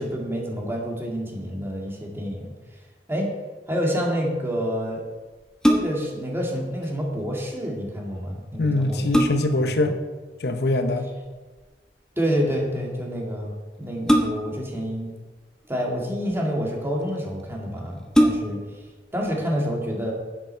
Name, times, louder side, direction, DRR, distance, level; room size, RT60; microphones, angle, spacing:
voice 1, 0.0-2.5 3.1-3.3 3.7-5.0 5.7-9.0 9.6-9.9 12.2-13.5 13.8-15.1 15.7-18.6 19.1-20.1, equal, 15° right, -1 dB, 2.1 m, -28 dB
sound 1, 5.4-6.2 8.2-8.3 8.8-9.7 11.2-11.6 14.1-14.7 15.6-16.3 17.1-17.2 17.5-17.6 18.1-18.7 19.2-19.3, equal, 5° left, 1.1 m, -22 dB
voice 2, 8.6-10.0 10.4-11.1, left 2 dB, 65° left, 7 dB, 0.8 m, -23 dB
10.5 x 8.1 x 4.5 m, 1.3 s
head